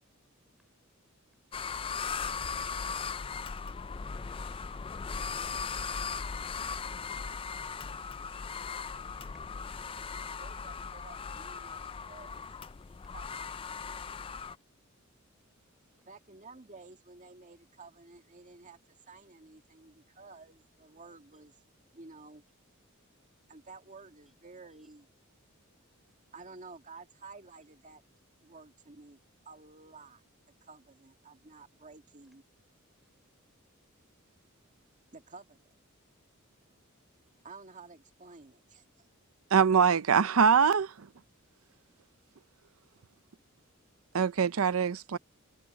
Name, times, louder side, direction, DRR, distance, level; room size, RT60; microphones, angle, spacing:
sound 1, 1.5-14.6, left 5 dB, 25° left, 0.4 m, -38 dB
voice 1, 4.2-4.7 12.7-13.1 16.0-16.1 21.3-21.4 24.3-24.4 24.7-25.0 32.9-33.2, equal, ahead, 3.8 m, -69 dB
voice 2, 10.0-12.5 13.1-13.6 16.1-21.6 21.9-22.4 23.5-25.1 26.3-28.0 28.4-29.2 29.5-30.2 30.6-32.4 35.1-35.6 37.4-39.1, right 3 dB, 35° right, 1.9 m, -52 dB
voice 3, 39.5-41.1 44.1-45.2, right 6 dB, 75° right, 0.6 m, -24 dB
head